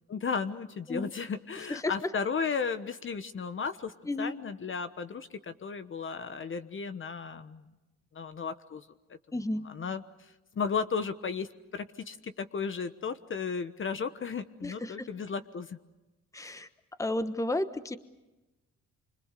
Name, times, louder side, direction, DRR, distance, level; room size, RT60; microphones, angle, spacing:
voice 1, 0.1-7.6 8.1-8.9 9.6-11.5 11.7-15.8, left 5 dB, 40° left, 10 dB, 1.2 m, -34 dB
voice 2, 9.3-9.6 14.6-15.1 16.3-16.7 17.0-18.0, left 1 dB, 10° left, 11 dB, 1.2 m, -32 dB
26.0 x 25.0 x 6.8 m, 1.0 s
cardioid pair, 90°, 30 cm